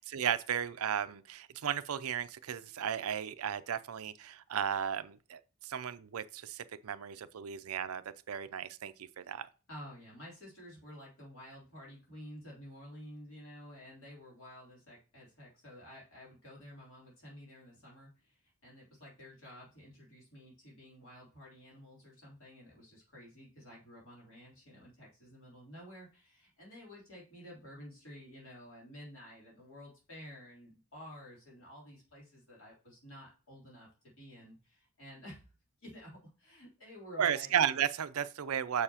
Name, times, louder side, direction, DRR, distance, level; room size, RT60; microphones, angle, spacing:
voice 1, 0.0-9.5 37.2-38.8, right 8 dB, 80° right, 0.5 m, -34 dB
voice 2, 9.7-35.4 35.8-37.5, equal, 60° left, 3.3 m, -52 dB
6.8 x 6.7 x 2.8 m
head